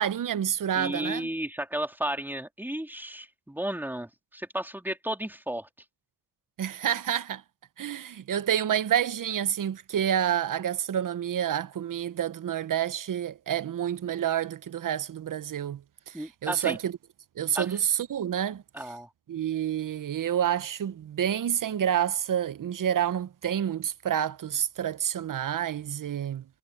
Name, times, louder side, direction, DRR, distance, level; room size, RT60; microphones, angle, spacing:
voice 1, 0.0-1.3 6.6-7.4 7.8-16.9 17.4-18.6 19.3-26.4, right 10 dB, 55° right, 1.1 m, -28 dB
voice 2, 0.7-5.7 16.1-16.8 17.5-17.7 18.7-19.1, right 1 dB, 5° right, 3.5 m, -33 dB
supercardioid pair, 65°, 39 cm